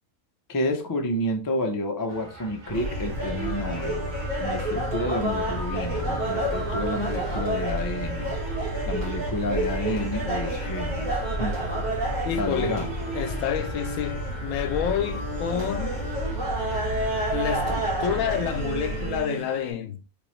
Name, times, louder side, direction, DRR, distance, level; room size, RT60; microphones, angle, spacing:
voice 1, 0.5-4.1 4.4-11.5 12.4-12.9, left 1 dB, 35° left, 0.3 m, -30 dB
sound 1, 2.1-19.1, right 2 dB, 40° right, 1.0 m, -44 dB
sound 2, 2.7-19.2, equal, 60° right, 1.6 m, -33 dB
sound 3, 2.7-19.7, right 1 dB, 75° right, 1.7 m, -31 dB
voice 2, 12.2-12.8 13.1-16.0 17.3-20.0, left 9 dB, 85° left, 1.0 m, -29 dB
3.4 x 3.0 x 3.1 m
omnidirectional pair, 1.4 m